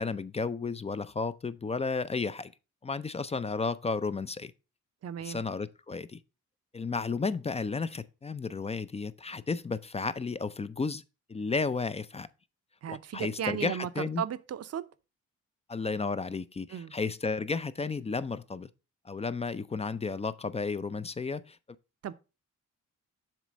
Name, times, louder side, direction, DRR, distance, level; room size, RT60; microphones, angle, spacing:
voice 1, 0.0-2.5 2.8-4.5 5.2-6.2 6.7-11.0 11.3-12.3 12.9-14.2 15.7-18.7 19.0-21.6, left 4 dB, 20° left, 0.4 m, -33 dB
voice 2, 5.0-5.4 12.8-14.9 16.7-16.9 22.0-22.1, right 9 dB, 50° right, 0.6 m, -35 dB
7.4 x 3.2 x 6.1 m
cardioid pair, 85°, 32 cm